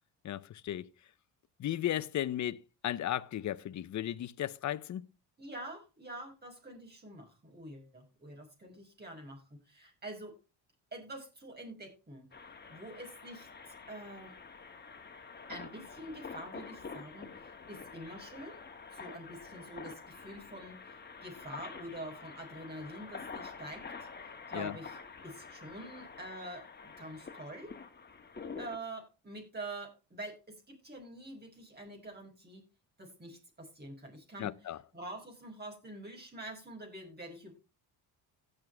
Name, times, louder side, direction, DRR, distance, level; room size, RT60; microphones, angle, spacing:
voice 1, 0.2-0.9 1.6-5.1 24.5-24.8 34.4-34.8, left 12 dB, 40° left, 0.7 m, -35 dB
voice 2, 5.4-10.3 10.9-12.3 12.7-13.5 13.9-14.3 15.5-17.3 17.7-18.6 18.9-23.9 24.5-25.0 25.2-27.7 28.6-32.6 33.0-34.6 34.9-37.5, right 1 dB, 20° right, 6.1 m, -46 dB
sound 1, 12.3-28.8, left 5 dB, 25° left, 2.0 m, -47 dB
17.0 x 6.6 x 3.4 m
cardioid pair, 90°, 43 cm